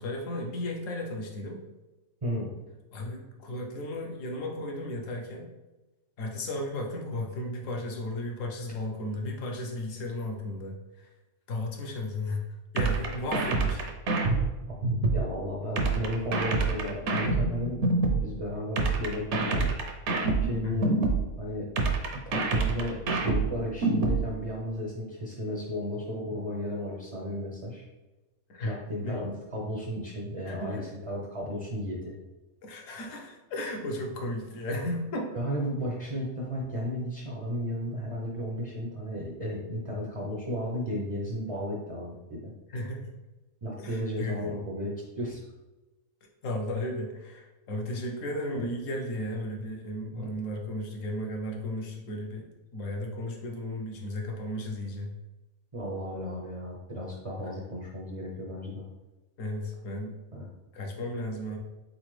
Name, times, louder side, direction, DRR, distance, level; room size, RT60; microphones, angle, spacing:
voice 1, 0.0-1.6 2.9-5.5 6.2-11.1 11.5-12.4 12.7-13.9 20.6-20.9 28.5-29.3 30.4-30.9 32.6-35.3 42.7-43.1 43.8-44.5 46.4-55.1 59.4-60.1 60.7-61.6, left 1 dB, 65° left, 1 dB, 1.1 m, -34 dB
voice 2, 2.2-2.6 14.9-19.7 20.4-21.0 21.4-21.7 22.3-27.8 28.6-30.8 31.1-32.1 35.3-42.5 43.6-45.4 48.5-48.7 50.1-50.3 55.7-58.9 60.3-60.5, equal, 40° right, -2 dB, 0.5 m, -34 dB
sound 1, 12.8-15.2 15.8-18.2 18.8-21.2 21.8-24.2, right 3 dB, 60° right, 0.9 m, -26 dB
4.0 x 3.9 x 3.2 m, 1.1 s
omnidirectional pair, 1.5 m